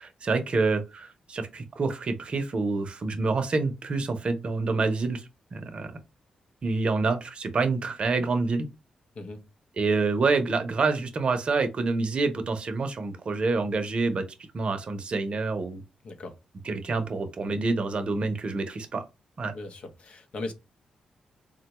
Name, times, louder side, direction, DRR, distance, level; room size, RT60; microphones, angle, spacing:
voice 1, 0.0-5.2 5.5-5.9 6.6-8.7 9.8-14.2 14.5-15.8 16.7-19.0 19.4-19.6, right 3 dB, 50° right, 0.7 m, -27 dB
voice 2, 9.1-9.5 16.0-16.4 19.5-20.5, left 2 dB, 60° left, 0.7 m, -38 dB
3.7 x 2.2 x 2.9 m
cardioid pair, 80°, 2 cm